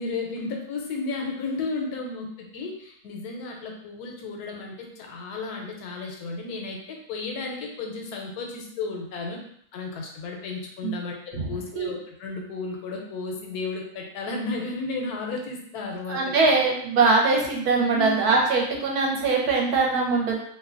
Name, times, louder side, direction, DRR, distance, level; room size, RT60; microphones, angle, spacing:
voice 1, 0.0-9.4 9.7-16.5 17.9-18.3, left 3 dB, 85° left, 1 dB, 1.1 m, -33 dB
voice 2, 16.1-20.4, right 4 dB, 80° right, -2 dB, 1.1 m, -22 dB
2.7 x 2.2 x 2.4 m, 0.68 s
omnidirectional pair, 1.6 m